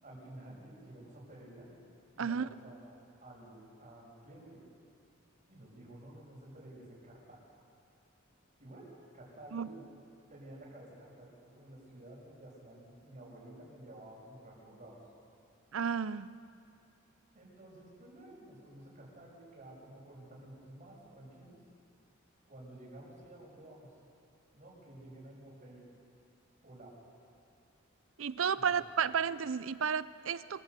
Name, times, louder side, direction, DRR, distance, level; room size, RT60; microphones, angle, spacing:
voice 1, 0.0-1.7 2.1-2.9 3.2-4.6 5.5-7.4 8.6-8.9 9.1-9.8 10.3-15.0 17.3-21.6 22.5-23.9 24.5-25.8 26.6-27.0 28.5-28.7, right 1 dB, 40° right, -4 dB, 6.8 m, -52 dB
voice 2, 2.2-2.5 9.5-9.7 15.7-16.3 28.2-30.6, right 7 dB, 70° right, 16 dB, 0.6 m, -32 dB
26.0 x 15.5 x 8.3 m, 2.5 s
head